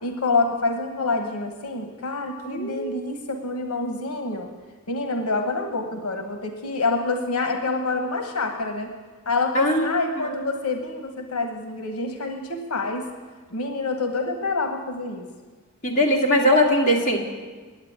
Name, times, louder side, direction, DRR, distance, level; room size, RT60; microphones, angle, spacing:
voice 1, 0.0-4.5 4.9-8.9 9.3-13.0 13.5-15.3, left 3 dB, 80° left, 4 dB, 1.1 m, -27 dB
voice 2, 2.5-3.0 9.5-10.5 15.8-17.2, equal, 35° left, -2 dB, 1.9 m, -21 dB
10.0 x 8.5 x 8.7 m, 1.4 s
head